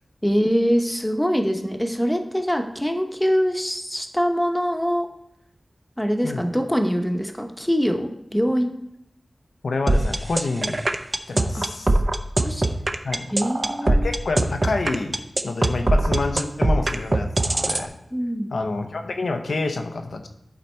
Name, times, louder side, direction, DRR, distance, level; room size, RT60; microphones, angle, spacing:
voice 1, 0.2-5.1 6.0-8.7 11.5-11.7 12.4-12.8 13.3-14.1 18.1-18.5, equal, 5° left, 5 dB, 0.9 m, -23 dB
voice 2, 9.6-10.8 11.3-11.9 13.0-13.3 13.8-17.9 18.5-20.3, left 3 dB, 80° left, 6 dB, 0.8 m, -28 dB
sound 1, 9.9-17.8, right 2 dB, 40° right, 0.6 m, -21 dB
11.0 x 4.1 x 4.4 m, 0.80 s
wide cardioid pair, 65°, 0 cm